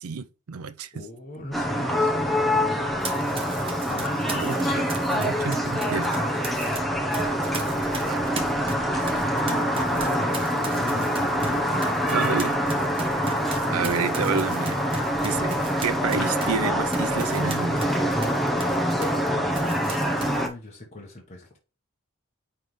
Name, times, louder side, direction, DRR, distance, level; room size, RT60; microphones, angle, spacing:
voice 1, 0.0-1.1 4.3-6.2 8.1-8.2 12.1-12.5 13.1-13.2 13.7-14.8 15.2-15.5 15.8-17.9, right 5 dB, 80° right, 0.6 m, -29 dB
voice 2, 0.9-2.3 3.9-4.8 7.9-11.8 20.1-21.6, left 1 dB, 30° left, 1.2 m, -40 dB
sound 1, 1.5-20.5, equal, ahead, 0.9 m, -25 dB
Run, 3.0-6.8 7.1-19.3 19.5-20.5, right 3 dB, 25° right, 1.0 m, -37 dB
9.2 x 3.4 x 3.2 m
head